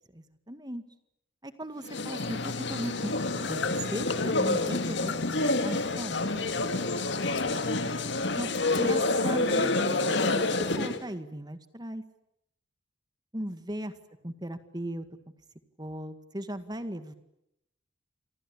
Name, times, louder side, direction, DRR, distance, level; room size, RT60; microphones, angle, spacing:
voice 1, 0.1-0.8 1.4-3.2 3.5-5.3 5.6-6.2 8.4-8.5 8.8-10.5 10.8-12.0 13.3-13.9 14.2-15.1 15.8-17.1, right 1 dB, 20° right, 10 dB, 2.0 m, -37 dB
sound 1, 1.8-11.0, left 2 dB, 60° left, 2.3 m, -28 dB
sound 2, 2.2-9.7, left 4 dB, 85° left, 1.1 m, -41 dB
29.5 x 26.0 x 7.4 m, 0.79 s
head